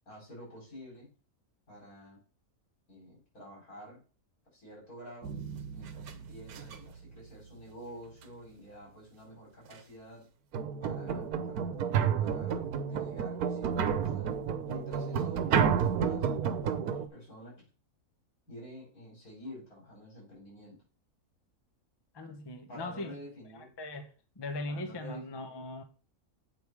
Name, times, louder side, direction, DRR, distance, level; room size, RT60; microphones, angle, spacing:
voice 1, 0.1-1.1 1.7-2.2 2.9-4.0 4.5-5.3 5.7-10.3 10.8-11.8 12.2-14.3 14.6-16.4 17.1-17.5 18.5-20.8 22.7-23.7 24.7-25.7, equal, 80° left, 5.2 m, -49 dB
sound 1, 5.2-7.0 9.7-9.8 10.5-17.1, right 7 dB, 85° right, 1.3 m, -31 dB
voice 2, 22.1-23.1 23.8-24.1 24.4-25.8, left 2 dB, 20° left, 0.7 m, -39 dB
7.8 x 5.3 x 4.7 m
omnidirectional pair, 1.5 m